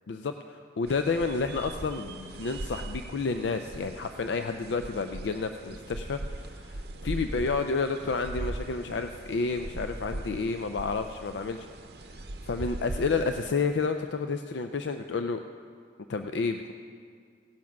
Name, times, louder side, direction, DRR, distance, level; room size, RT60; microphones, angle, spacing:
voice 1, 0.8-11.7 12.0-15.4 16.1-16.7, left 4 dB, 80° left, 7 dB, 0.4 m, -30 dB
sound 1, 0.9-13.5, right 1 dB, 60° right, 0.7 m, -40 dB
16.5 x 7.3 x 5.9 m, 2.1 s
head